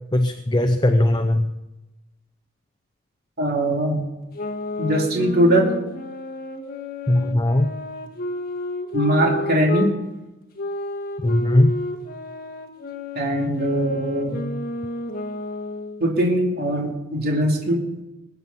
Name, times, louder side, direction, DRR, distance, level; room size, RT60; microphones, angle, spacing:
voice 1, 0.1-1.5 7.1-7.7 11.2-11.8, left 1 dB, 20° left, 7 dB, 0.7 m, -19 dB
voice 2, 3.4-4.0 4.8-5.7 8.9-9.9 13.1-14.4 16.0-17.8, right 1 dB, 45° right, -1 dB, 2.8 m, -21 dB
sound 1, 4.3-9.9 10.6-16.0, left 1 dB, 45° left, 1.7 m, -31 dB
21.5 x 8.9 x 5.6 m, 1.0 s
head